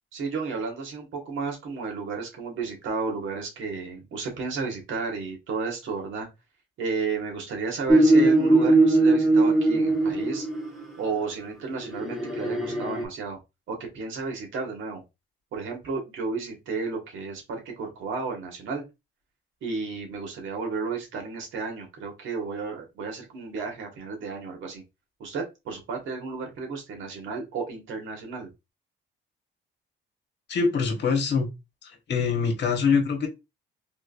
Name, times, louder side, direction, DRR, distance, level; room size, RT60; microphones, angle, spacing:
voice 1, 0.1-6.3 6.8-10.4 11.0-13.4 13.7-15.0 15.5-18.8 19.6-24.8 25.2-28.5, right 4 dB, 80° right, 1.6 m, -33 dB
sound 1, 7.9-10.8 11.8-13.0, right 2 dB, ahead, 1.4 m, -20 dB
voice 2, 30.5-31.5 32.1-33.3, left 5 dB, 60° left, 1.3 m, -23 dB
3.7 x 3.2 x 2.5 m
cardioid pair, 90°, 20 cm